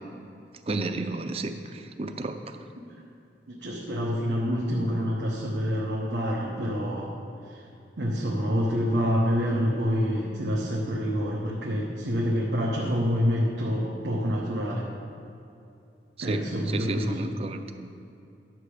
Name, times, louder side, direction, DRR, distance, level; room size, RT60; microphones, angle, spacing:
voice 1, 0.7-1.5 2.0-2.4 16.3-17.6, right 2 dB, 35° right, 8 dB, 0.5 m, -31 dB
voice 2, 3.5-7.1 8.0-14.8 16.2-17.3, equal, 90° right, -4 dB, 1.1 m, -27 dB
11.0 x 6.9 x 5.0 m, 2.6 s
head